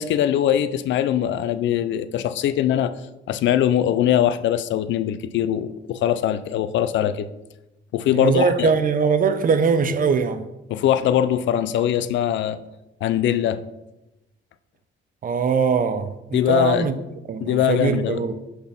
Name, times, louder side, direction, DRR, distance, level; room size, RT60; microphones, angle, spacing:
voice 1, 0.0-2.9 3.3-7.3 7.9-8.7 10.7-12.6 13.0-13.6 16.3-16.9 17.4-18.2, left 10 dB, 70° left, 0.4 m, -21 dB
voice 2, 8.1-10.4 15.2-16.9 17.3-18.4, right 5 dB, 45° right, 0.7 m, -21 dB
5.3 x 4.3 x 5.9 m
cardioid pair, 90°, 20 cm